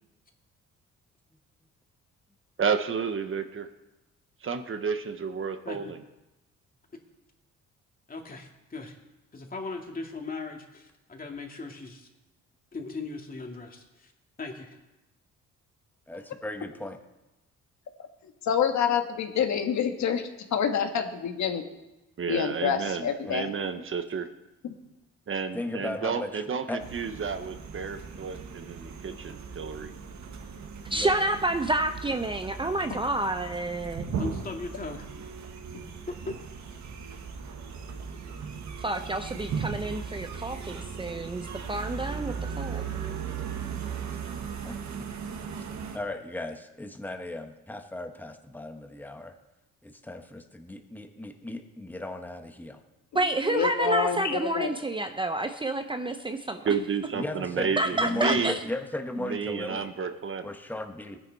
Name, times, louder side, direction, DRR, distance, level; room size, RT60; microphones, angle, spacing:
voice 1, 2.6-3.7 4.4-6.0 22.2-24.3 25.3-29.9 56.6-58.6 59.2-60.5, right 6 dB, 45° right, 8 dB, 1.1 m, -31 dB
voice 2, 8.1-9.0 9.3-12.1 12.7-14.1 14.4-14.8 34.2-35.1 36.1-36.4, left 3 dB, 30° left, 2 dB, 2.4 m, -38 dB
voice 3, 16.1-17.0 23.2-23.4 25.5-26.4 26.7-26.8 30.9-31.1 44.6-44.8 45.6-45.7 45.9-49.3 49.8-52.8 57.1-59.9 60.4-61.2, left 2 dB, 5° left, 5 dB, 1.3 m, -36 dB
voice 4, 18.4-21.6 22.3-23.5 24.6-24.7 53.5-54.7, left 7 dB, 70° left, 5 dB, 1.5 m, -27 dB
sound 1, 26.8-46.0, right 6 dB, 70° right, 1.7 m, -37 dB
voice 5, 30.9-34.1 38.8-42.8 53.1-56.6 57.8-58.6, right 2 dB, 15° right, 7 dB, 0.7 m, -29 dB
18.0 x 10.0 x 4.1 m, 1.0 s
cardioid pair, 90°, 30 cm